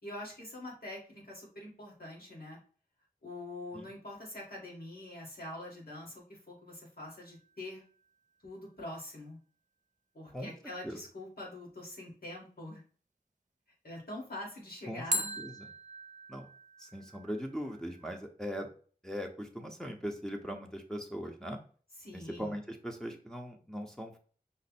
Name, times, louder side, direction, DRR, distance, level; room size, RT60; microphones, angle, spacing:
voice 1, 0.0-2.6 3.2-7.8 8.4-9.4 10.1-12.8 13.8-15.4 22.0-22.5, left 1 dB, 80° left, -2 dB, 2.0 m, -44 dB
sound 1, 7.1-8.1 15.1-18.1, equal, 55° right, 0.6 m, -40 dB
voice 2, 14.9-15.7 16.3-16.5 16.8-18.7 19.0-21.6 22.1-24.2, equal, 5° left, 1 dB, 0.7 m, -40 dB
5.3 x 2.0 x 4.1 m, 0.42 s
wide cardioid pair, 40°, 16 cm